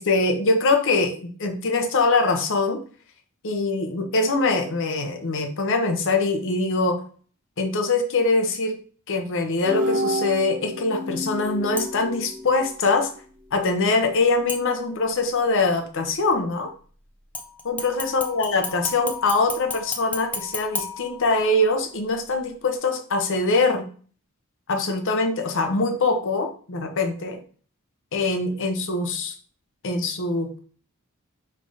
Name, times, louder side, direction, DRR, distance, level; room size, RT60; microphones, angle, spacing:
voice 1, 0.0-2.8 3.4-7.0 7.6-8.8 9.1-13.1 13.5-16.7 17.6-23.9 24.7-27.4 28.1-29.3 29.8-30.6, left 3 dB, 60° left, 6 dB, 0.7 m, -23 dB
sound 1, 9.6-12.9, left 1 dB, 40° right, 0.7 m, -28 dB
sound 2, 11.8-12.2 14.5-15.2 17.3-21.7 22.2-22.3, left 3 dB, 5° left, 0.5 m, -34 dB
4.9 x 3.3 x 2.6 m, 0.43 s
head